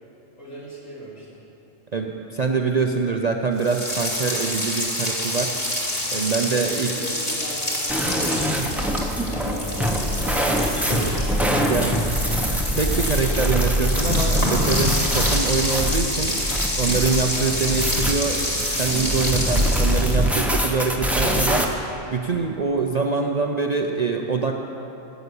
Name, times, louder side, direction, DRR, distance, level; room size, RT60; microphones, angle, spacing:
voice 1, 0.4-1.4 6.2-11.9, equal, 75° left, -8 dB, 4.1 m, -39 dB
voice 2, 1.9-5.5 6.1-6.9 10.9-11.1 11.7-11.9 12.8-16.4 16.8-21.7 22.1-24.5, right 5 dB, 45° right, 2 dB, 0.6 m, -24 dB
sound 1, 3.6-20.4, left 1 dB, 30° left, 2.5 m, -28 dB
sound 2, 7.9-21.6, equal, ahead, 0.8 m, -23 dB
15.5 x 8.1 x 6.9 m, 3.0 s
omnidirectional pair, 1.3 m